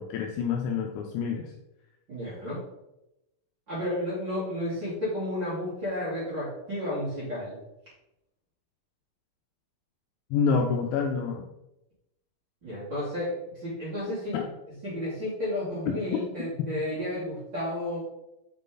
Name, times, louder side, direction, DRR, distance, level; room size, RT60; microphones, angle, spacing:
voice 1, 0.0-1.5 10.3-11.5 14.3-14.4 15.9-16.0, left 5 dB, 80° left, 1 dB, 2.7 m, -27 dB
voice 2, 2.1-2.6 3.7-7.6 12.6-14.4 14.8-18.0, left 1 dB, 30° right, -11 dB, 2.4 m, -32 dB
8.3 x 5.4 x 3.9 m, 0.89 s
omnidirectional pair, 5.7 m